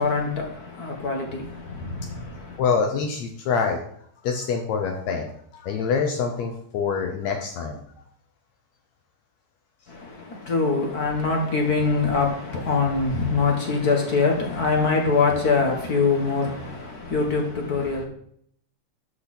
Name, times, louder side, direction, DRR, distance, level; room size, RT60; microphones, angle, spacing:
voice 1, 0.0-2.6 9.9-18.0, left 4 dB, 45° left, 1.4 m, -24 dB
voice 2, 2.6-3.8 4.2-7.8, left 5 dB, 75° left, 2.1 m, -25 dB
12.0 x 5.6 x 4.3 m
omnidirectional pair, 3.3 m